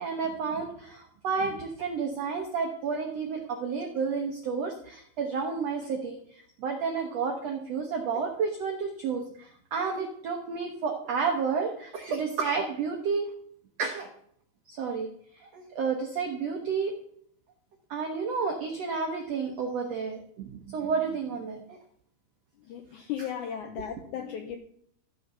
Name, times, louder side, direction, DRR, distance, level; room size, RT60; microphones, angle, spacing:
voice 1, 0.0-13.3 13.8-14.1 14.7-15.1 15.3-16.9 17.9-21.8 23.2-23.3, right 5 dB, 75° right, 3 dB, 1.5 m, -31 dB
voice 2, 22.7-24.6, left 9 dB, 80° left, 5 dB, 1.8 m, -36 dB
13.5 x 6.6 x 5.5 m, 0.66 s
omnidirectional pair, 4.4 m